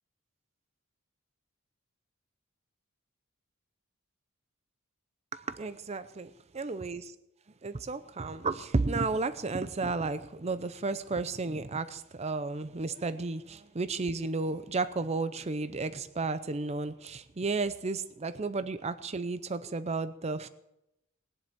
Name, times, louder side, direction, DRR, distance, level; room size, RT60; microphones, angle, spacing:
voice 1, 5.3-7.1 7.6-20.5, right 3 dB, 30° right, 12 dB, 0.6 m, -33 dB
20.0 x 7.8 x 8.7 m, 0.86 s
head